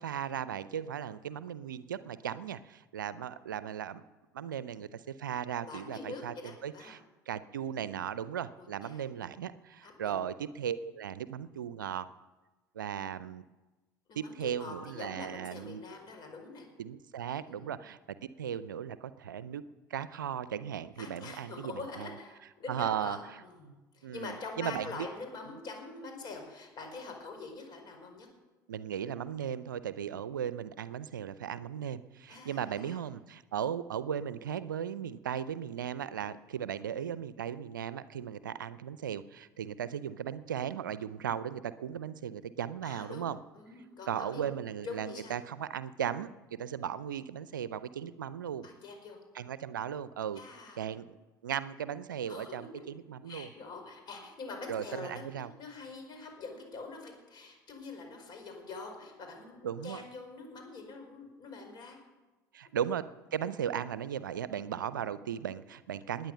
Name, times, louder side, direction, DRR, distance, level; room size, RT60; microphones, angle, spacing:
voice 1, 0.0-4.0 4.3-6.3 6.6-7.0 7.3-12.1 12.7-13.4 14.1-15.8 16.8-19.6 19.9-22.1 22.7-23.4 24.0-25.1 28.7-43.4 44.1-48.7 49.3-50.4 50.8-51.1 51.4-53.5 54.7-55.5 59.6-60.0 62.5-63.0 63.3-66.3, right 9 dB, 80° right, 16 dB, 0.5 m, -37 dB
voice 2, 5.6-6.9 8.6-9.0 9.8-10.2 14.1-16.7 17.5-17.7 21.0-28.3 32.3-33.0 42.8-44.5 44.8-45.4 48.6-49.2 50.3-50.8 52.3-52.8 53.3-62.0, left 3 dB, 45° left, 4 dB, 5.1 m, -45 dB
20.0 x 9.3 x 6.7 m, 1.1 s
figure-of-eight pair, 65°, 11 cm